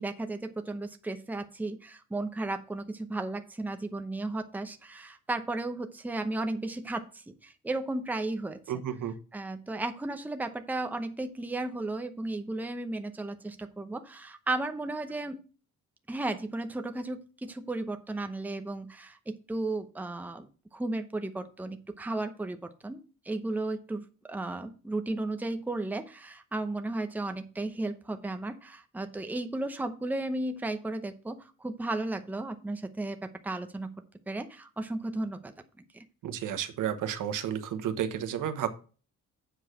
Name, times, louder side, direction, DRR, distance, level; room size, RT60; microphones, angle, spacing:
voice 1, 0.0-8.6 9.3-15.4 16.1-20.5 20.7-33.9 34.3-35.5 35.9-36.0, right 2 dB, 5° right, 7 dB, 0.8 m, -34 dB
voice 2, 8.7-9.2 36.2-38.7, right 9 dB, 75° right, 9 dB, 1.2 m, -32 dB
7.9 x 4.8 x 6.5 m, 0.36 s
cardioid pair, 135°, 32 cm